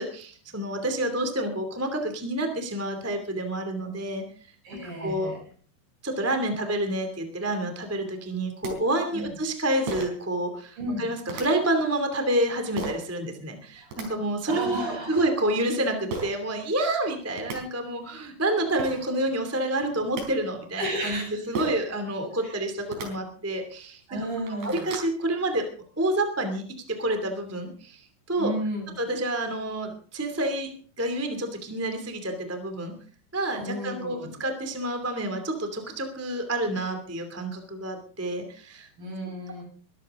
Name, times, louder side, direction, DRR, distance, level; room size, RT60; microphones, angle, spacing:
voice 1, 0.0-4.2 4.7-5.3 6.0-21.2 21.5-24.2 24.5-25.7 26.0-28.5 29.0-30.7 31.0-32.9 33.3-38.9, right 1 dB, 5° right, 5 dB, 1.6 m, -28 dB
voice 2, 4.6-5.5 9.1-9.3 10.8-11.1 13.8-14.0 14.5-15.3 20.8-21.5 22.4-22.7 24.1-24.8 28.4-29.0 33.6-34.3 39.0-39.6, right 1 dB, 55° right, 0 dB, 9.6 m, -33 dB
sound 1, 8.3-8.4 8.6-8.7 9.9-10.2 11.3-11.4 12.8-13.0 13.7-14.1 16.1-16.3 17.1-17.2 17.4-17.6 18.5-18.6 18.8-19.0 19.8-20.2 21.5-21.9 22.8-23.1 23.7-23.8 24.2-25.1, right 3 dB, 75° right, 6.4 m, -33 dB
22.5 x 13.0 x 3.8 m, 0.43 s
omnidirectional pair, 4.8 m